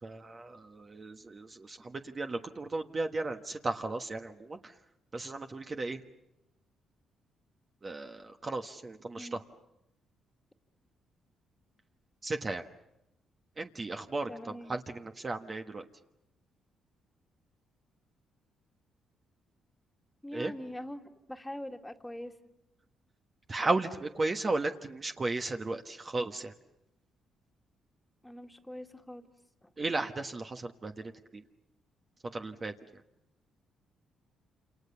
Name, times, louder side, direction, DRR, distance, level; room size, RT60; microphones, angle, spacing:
voice 1, 0.0-4.7 5.1-6.0 7.8-9.4 12.2-12.6 13.6-15.9 20.3-20.5 23.5-26.5 29.8-31.4 32.3-32.7, right 2 dB, 30° right, 5 dB, 1.3 m, -35 dB
voice 2, 14.3-14.7 20.2-22.3 28.2-29.2 29.6-29.7, left 1 dB, 10° left, 5 dB, 2.1 m, -43 dB
28.0 x 28.0 x 7.0 m, 0.89 s
cardioid pair, 90°, 0 cm